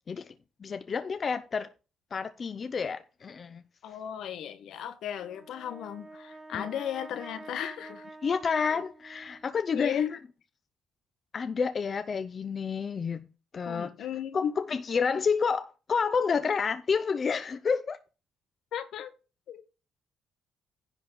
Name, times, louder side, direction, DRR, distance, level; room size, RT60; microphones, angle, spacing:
voice 1, 0.6-1.7 2.1-3.6 6.5-6.7 8.2-10.2 11.3-13.3 13.5-13.9 14.3-18.0, left 5 dB, 45° left, 0.7 m, -29 dB
voice 2, 3.8-8.1 8.7-8.8 9.7-10.1 13.7-14.5 18.7-19.1 19.5-19.7, left 9 dB, 75° left, 1.4 m, -35 dB
Brass instrument, 5.1-9.6, right 2 dB, 25° right, 1.0 m, -48 dB
10.5 x 4.3 x 7.0 m
cardioid pair, 90°, 0 cm